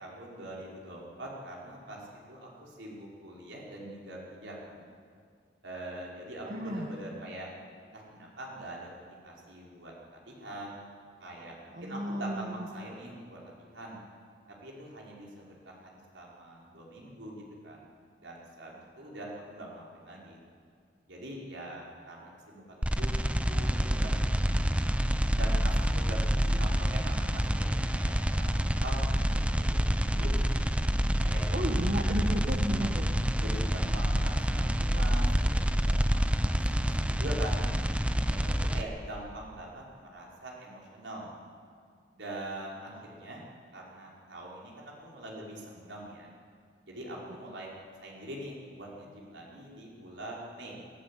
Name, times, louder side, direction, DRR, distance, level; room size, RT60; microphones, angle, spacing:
voice 1, 0.0-4.9 5.6-7.5 7.9-10.8 11.2-14.0 14.6-17.9 18.2-20.4 21.1-24.6 25.3-30.6 31.2-31.8 33.4-37.6 38.2-41.4 42.1-43.4 43.7-46.3 46.8-50.8, right 1 dB, 80° right, -3 dB, 5.6 m, -43 dB
voice 2, 6.4-6.9 11.7-12.7 31.5-33.1, equal, 45° right, 0 dB, 1.8 m, -33 dB
sound 1, 22.8-38.8, equal, 5° right, 0.7 m, -27 dB
22.0 x 15.5 x 8.7 m, 2.1 s
head